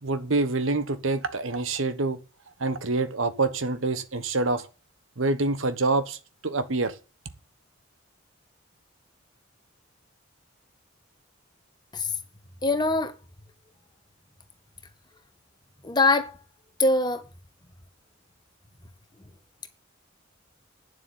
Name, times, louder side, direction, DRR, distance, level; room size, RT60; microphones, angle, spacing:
voice 1, 0.0-2.2 2.6-4.7 5.2-6.2 6.4-6.9, right 3 dB, 75° right, 1.3 m, -26 dB
voice 2, 12.6-13.1 15.8-16.3 16.8-17.2, left 2 dB, 20° left, 1.5 m, -22 dB
9.7 x 7.6 x 8.9 m
head